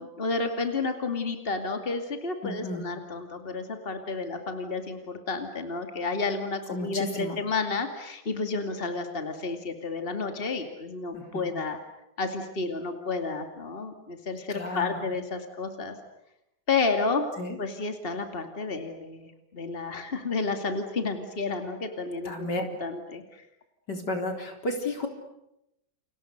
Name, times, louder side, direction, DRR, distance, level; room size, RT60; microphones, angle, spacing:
voice 1, 0.0-11.8 12.2-16.0 16.7-17.3 17.6-22.5 22.8-23.5, left 3 dB, 30° left, 6 dB, 2.7 m, -31 dB
voice 2, 2.4-2.8 6.7-7.4 11.1-11.5 14.5-15.0 17.4-17.6 22.2-22.6 23.9-25.1, left 2 dB, 75° left, 4 dB, 4.6 m, -32 dB
30.0 x 30.0 x 6.7 m, 0.84 s
omnidirectional pair, 1.8 m